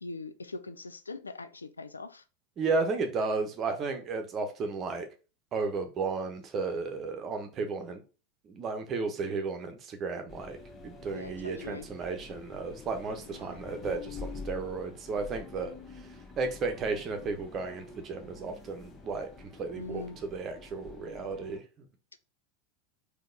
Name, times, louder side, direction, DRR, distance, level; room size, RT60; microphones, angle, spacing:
voice 1, 0.0-2.2 11.1-11.9 13.3-13.7 19.8-20.2 22.1-22.2, left 3 dB, 80° left, 0.4 m, -42 dB
voice 2, 2.6-5.1 5.5-8.0 8.4-10.6 10.8-15.7 16.4-21.6, right 4 dB, 35° right, 1.0 m, -33 dB
sound 1, 10.3-21.6, left 4 dB, 25° left, 1.0 m, -47 dB
4.0 x 2.9 x 3.9 m
figure-of-eight pair, 80°, 0 cm